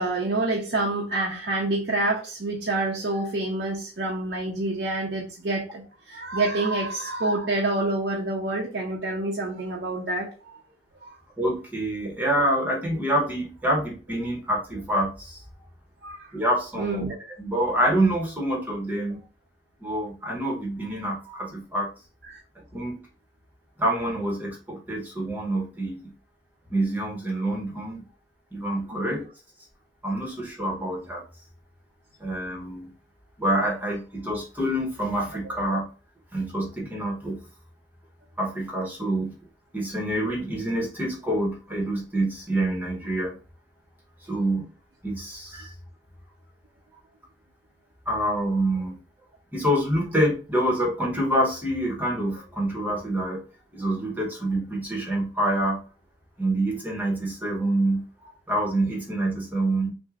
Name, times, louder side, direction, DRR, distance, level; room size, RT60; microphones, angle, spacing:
voice 1, 0.0-10.6 11.0-11.1 16.0-16.3 16.8-17.2 22.3-22.4 29.1-29.2 45.5-45.7, right 2 dB, 90° right, 0.7 m, -27 dB
voice 2, 11.4-15.4 16.3-17.1 17.4-19.2 19.8-21.9 22.7-23.0 23.8-26.1 26.7-28.0 28.5-29.2 30.0-31.2 32.2-32.9 33.4-35.9 36.3-37.4 38.4-39.4 39.7-43.4 44.3-44.7 45.0-45.7 48.1-49.0 49.5-53.4 53.7-55.8 56.4-59.9, right 1 dB, 10° right, 0.9 m, -26 dB
6.0 x 2.1 x 2.4 m
head